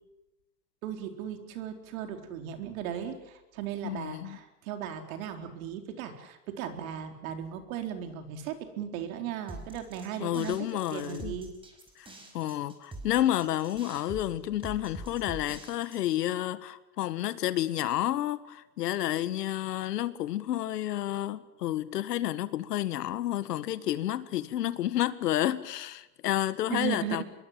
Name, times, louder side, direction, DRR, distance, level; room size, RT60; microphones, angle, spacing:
voice 1, 0.8-11.5 26.7-27.2, right 9 dB, 60° right, 4.2 m, -37 dB
voice 2, 3.8-4.4 10.2-11.4 12.0-12.1 12.3-27.2, left 13 dB, 80° left, 1.7 m, -30 dB
sound 1, 9.5-16.3, right 2 dB, 10° right, 5.2 m, -45 dB
26.0 x 21.5 x 7.6 m
supercardioid pair, 140°, 47 cm